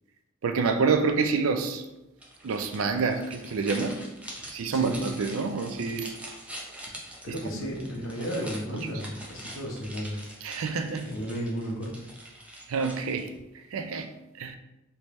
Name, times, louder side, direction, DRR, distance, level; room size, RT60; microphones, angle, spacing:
voice 1, 0.4-1.8 2.4-4.0 4.5-6.1 7.3-7.4 7.6-7.7 10.4-11.1 12.7-13.3 13.7-14.1 14.4-14.6, right 4 dB, 85° right, 7 dB, 0.4 m, -27 dB
sound 1, 2.2-13.4, right 1 dB, 5° right, 0.6 m, -44 dB
voice 2, 7.2-10.2 11.0-12.1, equal, 75° left, 0 dB, 0.8 m, -33 dB
3.4 x 2.8 x 3.0 m, 0.97 s
head